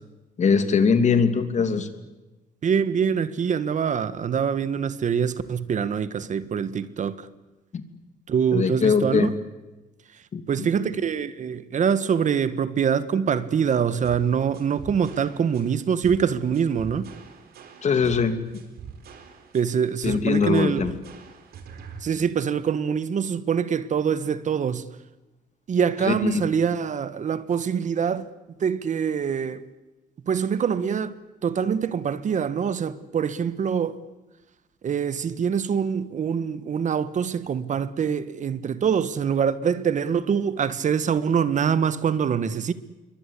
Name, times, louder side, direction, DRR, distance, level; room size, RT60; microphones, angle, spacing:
voice 1, 0.4-1.9 7.7-7.8 8.5-9.3 10.3-10.9 17.8-18.4 20.0-20.9 26.0-26.4, left 5 dB, 50° left, 3.0 m, -22 dB
voice 2, 2.6-7.2 8.3-9.3 10.5-17.1 19.5-20.9 22.0-24.9 25.7-28.3 28.6-29.6 30.3-34.0 34.8-42.7, right 7 dB, 50° right, 1.5 m, -24 dB
sound 1, 14.0-22.0, right 6 dB, 80° right, 4.4 m, -44 dB
27.5 x 23.5 x 8.4 m
cardioid pair, 105°, 16 cm